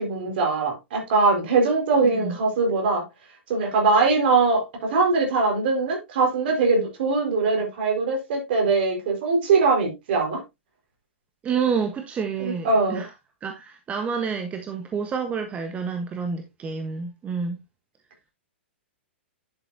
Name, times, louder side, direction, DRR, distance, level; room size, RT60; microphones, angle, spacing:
voice 1, 0.0-3.1 3.5-10.4 12.4-13.0, right 4 dB, 55° right, 4.9 m, -22 dB
voice 2, 2.0-2.4 11.4-13.1 13.4-17.6, right 6 dB, 20° right, 1.3 m, -29 dB
11.0 x 7.6 x 2.8 m
figure-of-eight pair, 110°, 6 cm